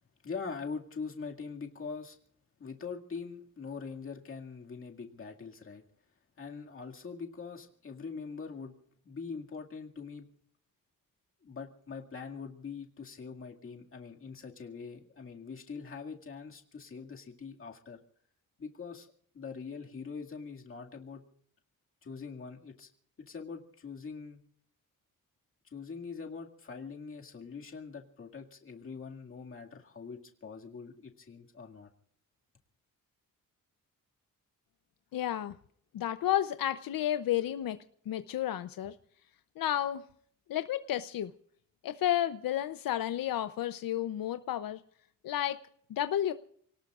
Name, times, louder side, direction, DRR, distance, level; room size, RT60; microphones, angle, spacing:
voice 1, 0.2-2.2 2.6-5.8 6.4-8.8 9.0-10.3 11.4-18.0 18.6-19.1 19.3-21.2 22.0-22.9 23.2-24.4 25.6-31.9, left 5 dB, 40° left, 1 dB, 2.2 m, -43 dB
voice 2, 35.1-35.5 35.9-37.8 38.1-39.0 39.6-40.0 40.5-41.3 41.8-44.8 45.2-45.6 45.9-46.3, left 11 dB, 80° left, 10 dB, 0.7 m, -31 dB
29.5 x 18.5 x 2.5 m, 0.63 s
wide cardioid pair, 175°, 34 cm